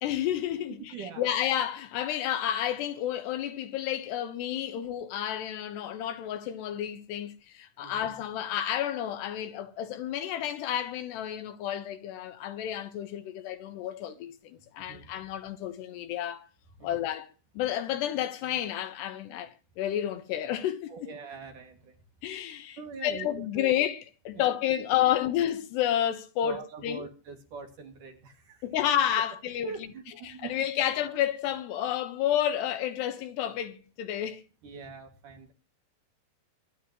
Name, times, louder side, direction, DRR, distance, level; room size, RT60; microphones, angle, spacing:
voice 1, 0.0-16.5 16.8-21.1 22.2-27.1 28.6-29.9 30.2-34.4, left 11 dB, 75° left, 3.4 m, -31 dB
voice 2, 0.9-1.3 7.8-8.1 14.9-15.1 16.8-16.9 20.9-22.0 22.8-23.3 23.5-23.7 24.4-24.5 26.4-28.6 29.6-30.5 34.6-35.5, right 5 dB, 55° right, 3.5 m, -43 dB
24.0 x 11.0 x 3.1 m
omnidirectional pair, 5.0 m